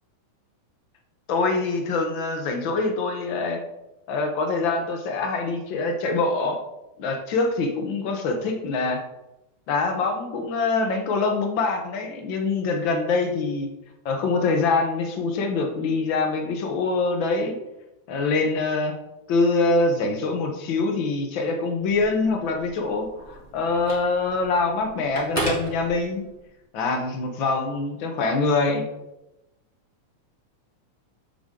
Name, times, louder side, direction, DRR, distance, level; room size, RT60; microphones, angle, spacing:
voice 1, 1.3-3.6 4.1-6.6 7.0-9.0 9.7-13.7 14.0-17.6 18.1-18.9 19.3-26.2 26.7-28.9, left 3 dB, 60° left, 3 dB, 1.3 m, -24 dB
Telephone, 21.8-26.5, right 1 dB, 5° left, 2.6 m, -35 dB
8.1 x 7.7 x 3.8 m, 0.93 s
omnidirectional pair, 3.6 m